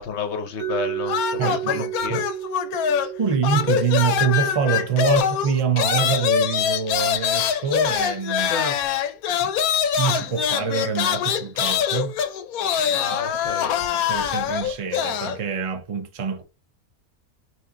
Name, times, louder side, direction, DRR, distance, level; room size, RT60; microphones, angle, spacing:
voice 1, 0.0-2.2 8.4-8.8 12.9-13.8, left 5 dB, 55° left, 0.9 m, -30 dB
Mallet percussion, 0.6-6.4, right 12 dB, 85° right, 1.3 m, -33 dB
sound 1, 1.1-3.2 3.4-15.4, left 8 dB, 80° left, 1.1 m, -24 dB
voice 2, 1.4-2.2 3.0-8.5 9.4-9.5 10.0-12.2 13.9-16.4, right 6 dB, 45° right, 0.4 m, -25 dB
3.5 x 3.1 x 3.7 m
omnidirectional pair, 1.6 m